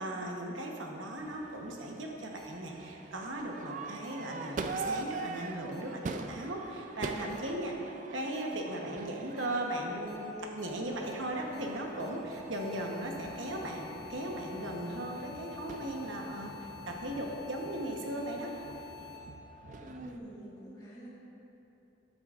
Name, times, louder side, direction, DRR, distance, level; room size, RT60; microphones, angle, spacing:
voice 1, 0.0-7.8 8.1-18.5, right 1 dB, 80° right, 0 dB, 1.0 m, -37 dB
Crowd / Fireworks, 1.2-20.2, right 3 dB, 40° right, 0.3 m, -44 dB
sound 1, 2.4-2.5 4.0-4.1 5.7-5.8 7.3-7.4 8.3-8.4 9.4-9.5 10.1-10.2 10.6-10.7 11.0-11.1 11.5-11.6 12.0-19.2, left 10 dB, 70° left, 1.5 m, -50 dB
sound 2, 10.8-17.4, left 1 dB, 45° left, 1.1 m, -53 dB
voice 2, 19.8-21.1, right 1 dB, 20° left, -8 dB, 1.5 m, -46 dB
12.5 x 8.7 x 2.5 m, 3.0 s
head